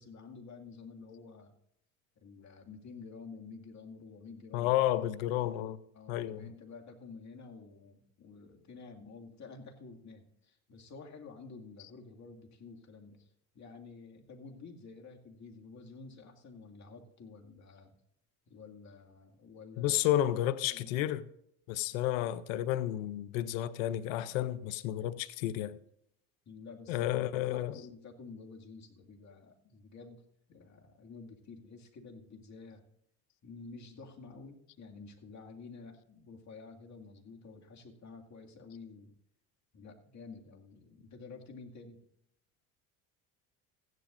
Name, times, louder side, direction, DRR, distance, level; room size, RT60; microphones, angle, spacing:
voice 1, 0.0-1.5 2.2-4.7 5.9-17.9 18.5-20.0 20.6-20.9 26.5-30.2 30.5-32.8 33.4-39.1 39.7-42.0, left 4 dB, 45° left, 2.1 m, -50 dB
voice 2, 4.5-5.8 6.1-6.5 19.8-21.2 21.7-25.8 26.9-27.8, left 13 dB, 90° left, 0.6 m, -31 dB
15.5 x 11.0 x 2.5 m
supercardioid pair, 75°, 39 cm